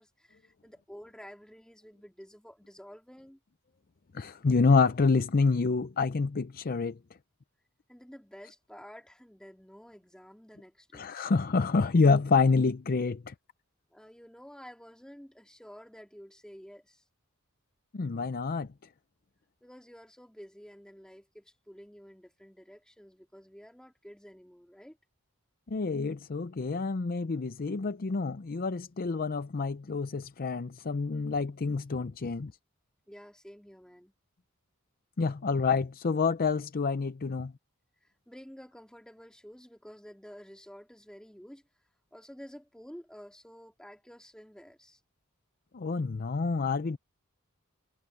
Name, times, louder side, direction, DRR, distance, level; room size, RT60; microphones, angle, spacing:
voice 1, 0.0-3.4 7.9-11.1 13.9-17.0 19.6-25.0 33.1-34.1 38.0-41.6 42.1-45.0, equal, 5° left, 2.3 m, -51 dB
voice 2, 4.1-7.0 10.9-13.3 17.9-18.7 25.7-32.5 35.2-37.5 45.7-47.0, left 4 dB, 45° left, 0.5 m, -27 dB
head